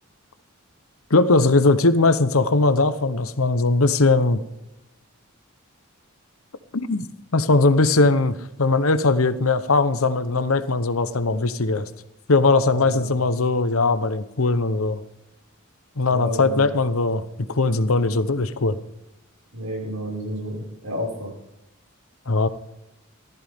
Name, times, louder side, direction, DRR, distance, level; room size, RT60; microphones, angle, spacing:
voice 1, 1.1-4.4 6.8-7.1 7.3-11.9 12.3-15.0 16.0-17.2 17.5-18.8 22.3-22.5, left 3 dB, 75° left, 13 dB, 1.0 m, -20 dB
voice 2, 12.7-13.2 16.1-16.6 19.5-21.3, equal, 75° right, -2 dB, 5.7 m, -31 dB
15.5 x 13.5 x 3.6 m, 0.86 s
head